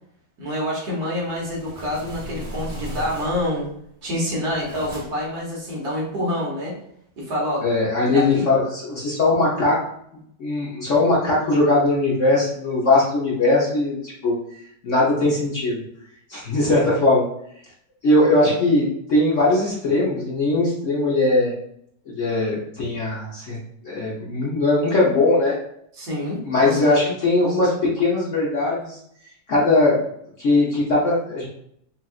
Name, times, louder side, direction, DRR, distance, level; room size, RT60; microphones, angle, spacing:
voice 1, 0.4-3.7 4.0-6.8 7.2-7.6 8.1-8.5 26.0-27.1, left 1 dB, 60° right, -4 dB, 1.8 m, -27 dB
sound 1, 1.2-3.6 4.1-5.4, equal, 35° right, 0.4 m, -37 dB
voice 2, 7.6-9.8 10.4-14.4 14.8-15.8 16.3-17.3 18.0-21.5 22.1-23.6 23.8-25.6 26.4-29.0 29.5-30.0 30.4-31.5, left 2 dB, 50° left, -5 dB, 1.0 m, -20 dB
5.7 x 2.5 x 2.4 m, 0.70 s
omnidirectional pair, 1.9 m